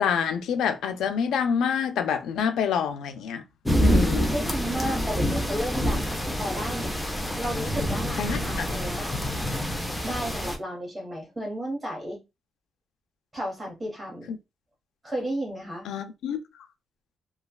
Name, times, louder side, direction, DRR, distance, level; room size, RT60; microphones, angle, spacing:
voice 1, 0.0-3.4 3.8-4.3 8.2-8.7 14.3-14.4 15.9-16.6, left 7 dB, 90° left, 0.5 m, -27 dB
sound 1, 3.7-10.6, equal, 5° left, 0.5 m, -27 dB
voice 2, 4.3-7.0 7.4-9.1 10.0-12.2 13.3-14.3 15.0-15.9, equal, 15° right, 1.2 m, -33 dB
3.1 x 2.3 x 2.3 m
cardioid pair, 145°, 0 cm